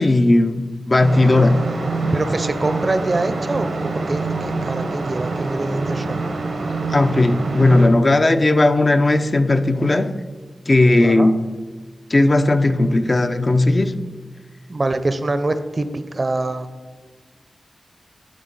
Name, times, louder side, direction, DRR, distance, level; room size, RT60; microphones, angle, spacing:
voice 1, 0.0-1.6 6.9-10.2 10.7-11.3 12.1-14.0, left 2 dB, 45° left, 8 dB, 0.5 m, -16 dB
sound 1, 1.0-7.9, right 3 dB, 90° right, 0.9 m, -25 dB
voice 2, 2.1-6.2 11.0-11.3 14.7-16.7, right 2 dB, 45° right, 10 dB, 0.5 m, -24 dB
10.5 x 3.6 x 3.9 m, 1.3 s
cardioid pair, 50°, 0 cm